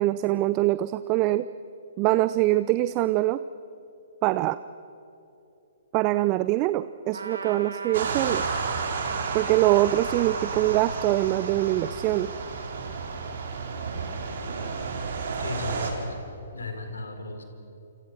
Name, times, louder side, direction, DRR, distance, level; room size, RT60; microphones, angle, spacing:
voice 1, 0.0-1.5 2.0-3.4 4.2-4.6 5.9-8.4 9.3-12.3, right 16 dB, 30° right, 15 dB, 0.6 m, -23 dB
Trumpet, 7.1-13.0, right 4 dB, 75° right, 3.2 m, -40 dB
sound 1, 7.9-15.9, right 5 dB, 60° right, 4.7 m, -32 dB
voice 2, 15.4-17.4, left 2 dB, 75° left, 7 dB, 4.0 m, -35 dB
28.0 x 26.5 x 6.4 m, 2.9 s
figure-of-eight pair, 125°, 0 cm